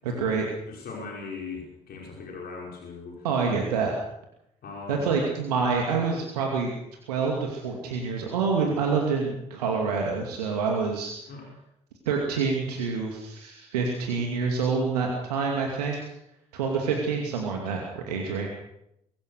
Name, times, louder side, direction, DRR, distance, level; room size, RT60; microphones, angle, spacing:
voice 1, 0.0-0.5 3.2-3.9 4.9-6.7 7.1-11.1 12.1-16.0 16.5-18.5, right 5 dB, 75° right, 0 dB, 2.6 m, -27 dB
voice 2, 0.6-3.3 4.6-5.2 11.3-11.5, left 4 dB, 50° left, -1 dB, 5.6 m, -39 dB
23.5 x 17.5 x 6.6 m, 0.81 s
figure-of-eight pair, 45°, 20 cm